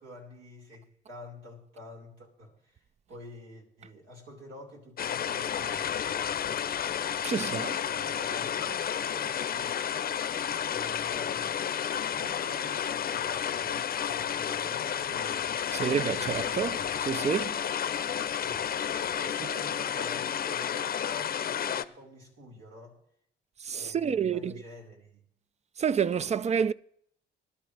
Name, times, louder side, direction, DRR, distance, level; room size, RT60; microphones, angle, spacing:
voice 1, 0.0-6.2 7.3-10.1 10.7-11.6 11.8-15.6 18.3-18.7 19.1-23.0 23.7-25.2, left 1 dB, 85° right, 4.8 m, -48 dB
sound 1, 5.0-21.9, left 9 dB, 50° left, 0.6 m, -31 dB
voice 2, 7.2-7.7 15.7-17.6 23.6-24.5 25.8-26.7, right 7 dB, 35° right, 0.4 m, -29 dB
19.5 x 12.0 x 3.4 m
cardioid pair, 90°, 20 cm